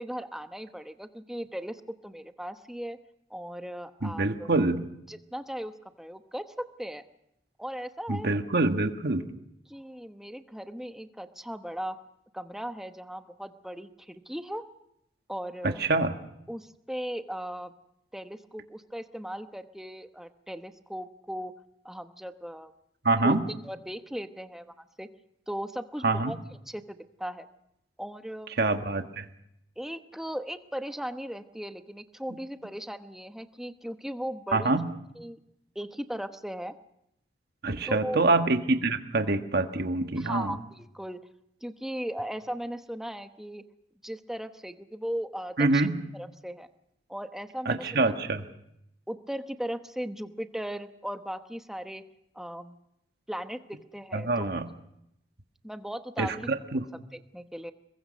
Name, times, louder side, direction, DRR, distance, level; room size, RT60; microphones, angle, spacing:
voice 1, 0.0-3.0 3.3-4.5 5.1-5.7 6.0-7.0 7.6-8.3 9.7-11.9 12.3-14.6 15.3-15.8 16.5-17.7 18.1-21.5 21.8-22.7 23.2-23.4 23.6-25.1 25.5-26.4 26.7-27.5 28.0-28.5 29.8-34.7 35.2-35.4 35.7-36.7 37.9-38.2 40.2-41.2 41.6-43.6 44.0-46.7 47.1-48.1 49.1-52.0 52.3-52.8 53.3-54.5 55.6-56.5 57.1-57.7, equal, ahead, 8 dB, 1.0 m, -37 dB
voice 2, 4.0-4.9 8.1-9.2 15.6-16.1 23.0-23.4 26.0-26.3 28.6-29.2 34.5-34.9 37.6-40.6 45.6-46.0 47.6-48.4 54.1-54.7 56.2-56.8, right 2 dB, 60° right, 7 dB, 1.5 m, -26 dB
27.0 x 22.0 x 5.3 m, 0.80 s
head